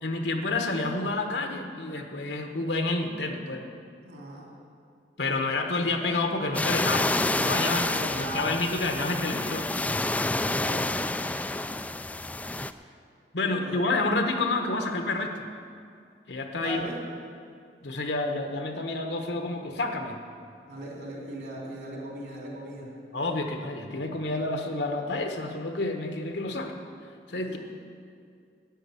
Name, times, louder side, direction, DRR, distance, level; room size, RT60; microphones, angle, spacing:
voice 1, 0.0-3.6 5.2-7.9 8.1-9.7 13.3-15.3 16.3-16.8 17.8-20.2 23.1-26.8 27.3-27.6, left 2 dB, 75° left, 4 dB, 1.3 m, -29 dB
voice 2, 4.0-4.4 7.6-8.6 10.4-10.9 13.4-13.8 16.6-17.0 20.7-22.9 27.5-27.6, right 1 dB, 65° right, -2 dB, 3.5 m, -38 dB
sound 1, 6.5-12.7, left 2 dB, 10° left, 0.3 m, -28 dB
10.0 x 9.2 x 8.5 m, 2.3 s
head